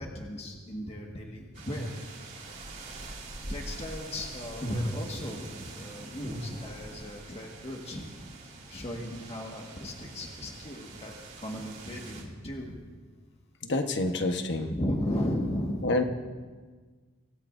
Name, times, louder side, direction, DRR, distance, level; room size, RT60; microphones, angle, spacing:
voice 1, 0.0-2.0 3.5-8.1 8.7-12.8 14.7-16.0, left 1 dB, 30° left, -1 dB, 1.7 m, -35 dB
sound 1, 1.5-12.2, right 2 dB, 45° right, 3.9 m, -44 dB
voice 2, 13.6-14.7 15.8-16.0, left 2 dB, 55° left, 5 dB, 1.2 m, -27 dB
25.0 x 16.0 x 2.7 m, 1.5 s
head